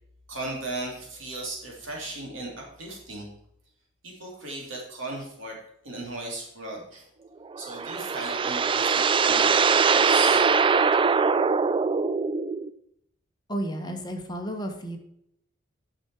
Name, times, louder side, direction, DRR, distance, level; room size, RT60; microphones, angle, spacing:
voice 1, 0.3-3.3 4.0-7.1 7.6-10.4, right 2 dB, 70° right, -1 dB, 2.9 m, -37 dB
sound 1, 7.5-12.7, right 5 dB, 25° right, 0.3 m, -22 dB
voice 2, 13.5-15.0, right 1 dB, 20° left, 3 dB, 1.3 m, -32 dB
9.3 x 5.9 x 4.7 m, 0.74 s
head